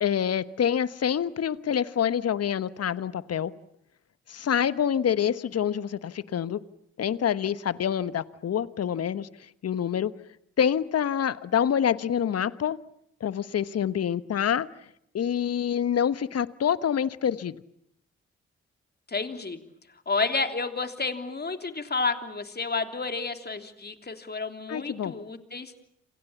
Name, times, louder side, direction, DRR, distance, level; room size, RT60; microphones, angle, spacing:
voice 1, 0.0-3.5 4.3-6.6 7.0-9.3 9.6-10.1 10.6-12.8 13.2-14.7 15.1-17.6 24.7-25.1, left 8 dB, 55° left, 16 dB, 1.2 m, -26 dB
voice 2, 19.1-19.6 20.1-25.8, left 4 dB, 35° left, 7 dB, 3.3 m, -30 dB
29.0 x 27.5 x 7.2 m, 0.74 s
hypercardioid pair, 40°, 30 cm